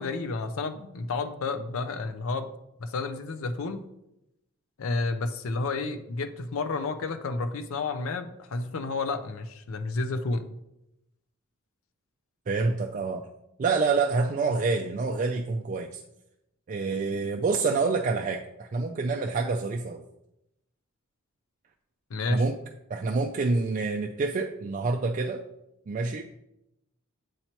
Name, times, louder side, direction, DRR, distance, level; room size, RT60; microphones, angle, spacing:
voice 1, 0.0-2.5 2.8-3.8 4.8-10.4 22.1-22.4, left 3 dB, 65° left, 9 dB, 0.5 m, -31 dB
voice 2, 12.5-13.3 13.6-16.0 16.7-20.0 22.3-22.6 22.9-25.4 25.9-26.2, right 4 dB, 35° right, 2 dB, 0.3 m, -27 dB
7.8 x 2.9 x 4.4 m, 0.86 s
head